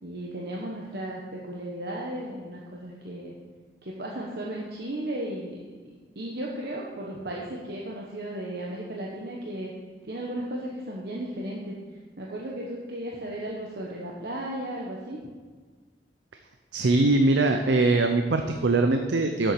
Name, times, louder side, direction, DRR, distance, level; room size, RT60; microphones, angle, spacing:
voice 1, 0.0-3.3 3.8-5.6 6.1-9.7 10.0-11.8 12.2-15.2, right 1 dB, 60° right, -3 dB, 1.1 m, -35 dB
voice 2, 16.7-19.5, right 2 dB, 85° right, 6 dB, 0.6 m, -22 dB
7.8 x 7.6 x 6.7 m, 1.5 s
head